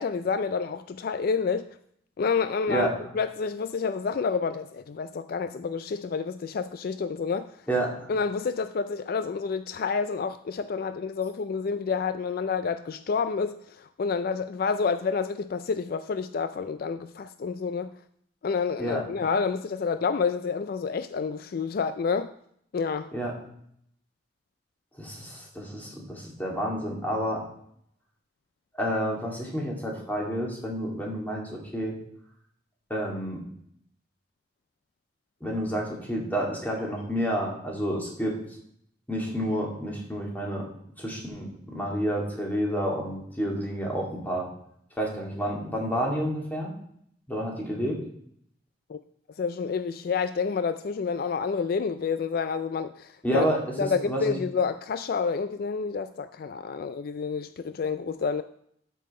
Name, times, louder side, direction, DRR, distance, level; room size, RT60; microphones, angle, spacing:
voice 1, 0.0-1.7 2.2-2.9 3.1-7.5 8.1-17.9 18.4-22.3 22.7-23.1 48.9-49.0 49.4-53.5 53.8-58.4, left 5 dB, 55° left, 0.4 m, -29 dB
voice 2, 7.7-8.1 18.8-19.0 23.1-23.3 25.0-27.4 28.8-31.9 32.9-33.4 35.4-38.4 39.1-40.6 41.0-44.5 45.0-46.7 47.3-48.0 53.2-54.3, equal, 10° left, 2.4 m, -29 dB
12.5 x 5.5 x 4.3 m
head